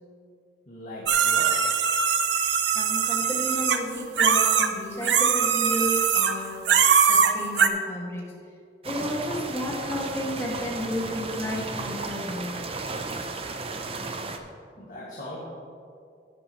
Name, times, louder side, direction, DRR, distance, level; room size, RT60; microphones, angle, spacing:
voice 1, 0.7-1.7 14.8-15.4, left 1 dB, 50° left, -8 dB, 2.1 m, -39 dB
sound 1, 1.1-4.7 5.0-6.4 6.6-7.7, right 7 dB, 85° right, 0.6 m, -21 dB
voice 2, 2.7-6.8 7.1-8.3 8.8-12.5, left 1 dB, 15° left, -4 dB, 2.1 m, -32 dB
sound 2, 8.8-14.4, right 3 dB, 35° right, 0.7 m, -34 dB
11.0 x 10.5 x 3.2 m, 2.3 s
head